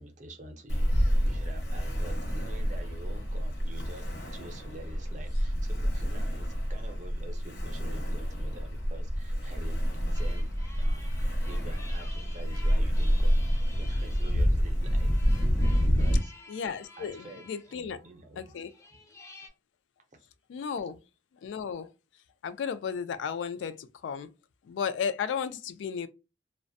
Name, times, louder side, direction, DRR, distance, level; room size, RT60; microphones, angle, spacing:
voice 1, 0.0-10.5 10.8-15.1 15.8-16.3 17.0-18.7 20.1-20.3, right 1 dB, 40° right, 0.5 m, -47 dB
Ocean, 0.7-16.2, equal, 65° left, 0.7 m, -28 dB
sound 1, 10.1-19.5, left 2 dB, 15° left, 0.4 m, -51 dB
voice 2, 16.5-18.0 18.4-18.7 20.5-21.0 21.4-21.9 22.4-24.3 24.6-26.1, left 7 dB, 90° left, 0.3 m, -34 dB
2.4 x 2.1 x 2.5 m
head